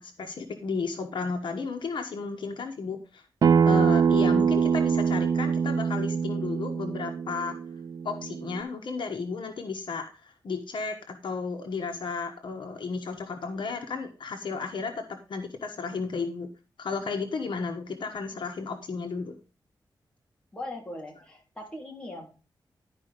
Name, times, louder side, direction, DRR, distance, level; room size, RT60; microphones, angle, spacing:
voice 1, 0.0-3.2 3.6-7.6 8.0-16.5 16.8-19.3, left 4 dB, 75° left, 4 dB, 1.3 m, -33 dB
Acoustic guitar, 3.4-8.6, right 6 dB, 55° right, 0.3 m, -24 dB
voice 2, 20.5-22.3, left 1 dB, 10° left, -1 dB, 3.4 m, -39 dB
11.5 x 5.1 x 5.1 m, 0.33 s
wide cardioid pair, 145°, 8 cm